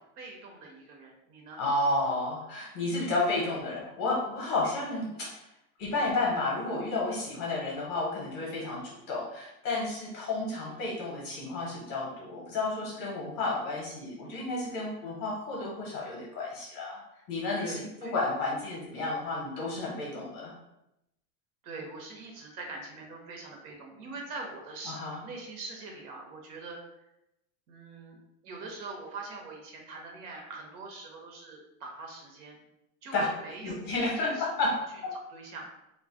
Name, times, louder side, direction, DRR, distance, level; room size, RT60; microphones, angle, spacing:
voice 1, 0.0-1.6 2.9-3.1 8.4-8.5 10.6-10.9 15.0-15.2 17.6-18.1 21.6-25.0 25.2-27.1 27.7-32.6 33.0-33.9 34.2-34.8 35.3-35.7, right 3 dB, 90° right, 1 dB, 1.0 m, -43 dB
voice 2, 1.6-5.3 5.8-17.0 17.3-20.5 24.9-25.2 33.1-33.3 33.6-34.7, left 2 dB, 25° left, -4 dB, 0.6 m, -31 dB
2.4 x 2.0 x 3.6 m, 0.86 s
supercardioid pair, 175°, 44 cm